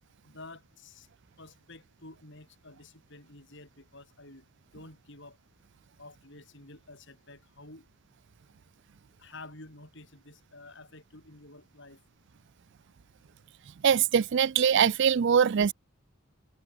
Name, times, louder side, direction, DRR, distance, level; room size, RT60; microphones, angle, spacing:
voice 1, 0.2-1.1 1.4-4.5 4.7-5.4 6.0-7.9 9.2-12.0, left 2 dB, 55° left, 7.5 m, -50 dB
voice 2, 13.8-15.7, right 7 dB, 55° right, 0.4 m, -22 dB
head